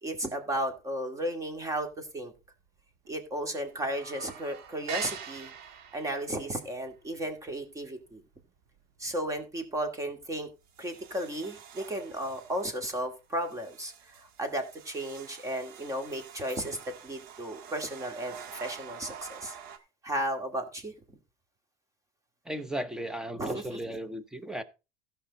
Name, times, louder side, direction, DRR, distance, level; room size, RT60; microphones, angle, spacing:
voice 1, 0.0-2.3 3.1-5.5 5.9-8.2 9.0-10.5 10.8-16.8 17.0-19.6 20.0-20.9 23.4-23.8, right 1 dB, 20° right, 2.2 m, -34 dB
sound 1, 1.6-2.1 2.4-2.5 2.8-3.4 3.7-8.9 9.3-9.6 10.1-10.2 10.6-19.8, right 7 dB, 65° right, 1.5 m, -46 dB
voice 2, 22.4-24.6, right 1 dB, 5° right, 0.9 m, -36 dB
16.0 x 5.7 x 4.1 m
cardioid pair, 140°, 17 cm